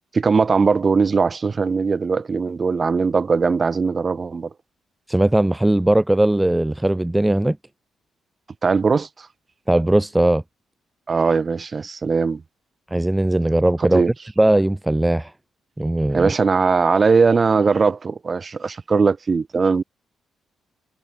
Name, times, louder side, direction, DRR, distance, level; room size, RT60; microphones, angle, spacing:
voice 1, 0.1-4.5 8.6-9.3 11.1-12.4 13.9-14.1 16.1-19.8, right 4 dB, 40° right, 5.2 m, -19 dB
voice 2, 5.1-7.6 9.7-10.4 12.9-14.0 14.4-15.3 15.8-16.3, right 1 dB, 10° right, 2.1 m, -18 dB
supercardioid pair, 60°, 0 cm